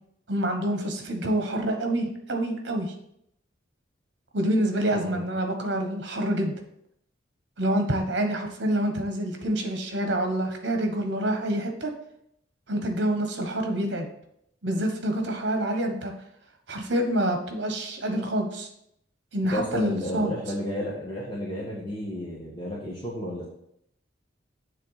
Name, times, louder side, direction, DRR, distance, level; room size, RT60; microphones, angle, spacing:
voice 1, 0.3-2.9 4.3-6.5 7.6-11.9 12.7-14.1 14.6-16.1 16.7-18.7 19.3-20.3, right 1 dB, 65° right, 4 dB, 1.2 m, -27 dB
voice 2, 4.9-5.2 19.5-23.4, equal, 25° left, -6 dB, 1.3 m, -32 dB
7.5 x 3.5 x 5.7 m, 0.74 s
head